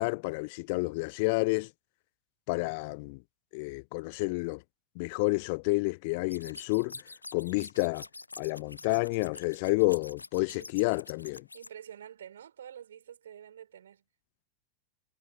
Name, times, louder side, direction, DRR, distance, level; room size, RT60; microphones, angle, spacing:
voice 1, 0.0-1.7 2.5-3.2 3.5-4.6 5.0-7.0 7.3-8.1 8.4-11.4, left 28 dB, 45° left, 0.4 m, -29 dB
sound 1, 6.3-11.7, left 3 dB, 80° left, 1.0 m, -46 dB
voice 2, 11.5-14.0, right 9 dB, 65° right, 4.9 m, -48 dB
figure-of-eight pair, 90°, 0 cm